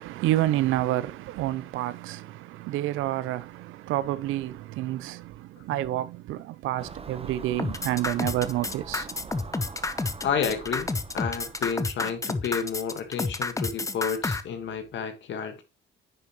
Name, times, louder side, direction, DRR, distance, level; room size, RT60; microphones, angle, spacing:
voice 1, 0.0-9.3, right 14 dB, 90° right, 0.5 m, -29 dB
Car passing by / Engine, 6.8-11.8, right 5 dB, 30° right, 0.9 m, -43 dB
sound 1, 7.6-14.4, left 3 dB, 15° left, 0.8 m, -29 dB
voice 2, 10.2-15.6, left 7 dB, 70° left, 1.6 m, -31 dB
10.0 x 7.0 x 3.0 m
cardioid pair, 90°, 20 cm